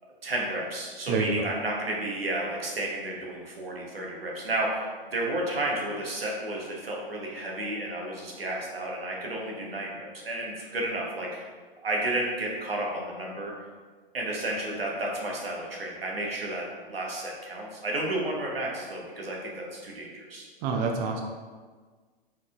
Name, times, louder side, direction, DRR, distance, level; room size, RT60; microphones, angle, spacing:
voice 1, 0.2-11.5 11.8-13.5 14.1-20.5, right 1 dB, 80° right, -2 dB, 1.1 m, -32 dB
voice 2, 1.1-1.5 20.6-21.2, right 4 dB, 30° right, 2 dB, 0.5 m, -27 dB
4.5 x 3.7 x 2.4 m, 1.5 s
figure-of-eight pair, 110°, 29 cm